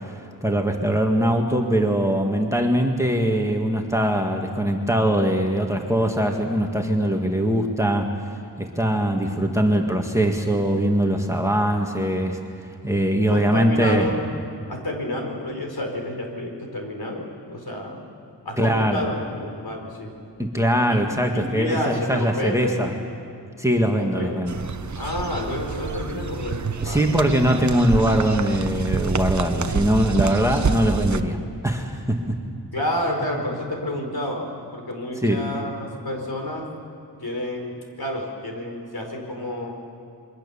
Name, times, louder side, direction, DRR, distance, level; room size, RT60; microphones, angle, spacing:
voice 1, 0.1-8.1 8.6-12.4 12.8-14.1 18.6-19.0 20.4-22.9 23.6-24.6 26.8-32.4 35.2-35.4, right 1 dB, 5° right, 2 dB, 1.9 m, -22 dB
voice 2, 13.3-14.3 14.7-18.1 18.4-20.1 20.9-21.0 21.3-22.9 23.9-24.4 25.0-27.3 32.7-36.7 37.2-39.7, left 1 dB, 60° left, 2 dB, 4.8 m, -29 dB
sound 1, 24.5-31.2, right 5 dB, 45° right, 0.9 m, -27 dB
27.5 x 23.0 x 7.1 m, 2.4 s
wide cardioid pair, 95°, 41 cm